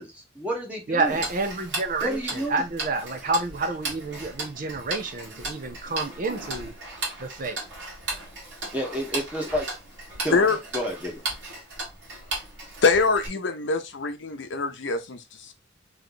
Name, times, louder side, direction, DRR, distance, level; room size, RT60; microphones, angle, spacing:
voice 1, 0.0-1.2 2.0-2.5 8.7-9.7 10.2-11.1, equal, 10° right, 1.3 m, -30 dB
voice 2, 0.9-6.8 7.2-7.6, right 3 dB, 45° right, 0.6 m, -29 dB
Tick-tock, 1.0-13.3, right 2 dB, 65° right, 1.7 m, -36 dB
voice 3, 12.8-15.5, left 4 dB, 70° left, 0.7 m, -24 dB
3.3 x 2.9 x 4.0 m
head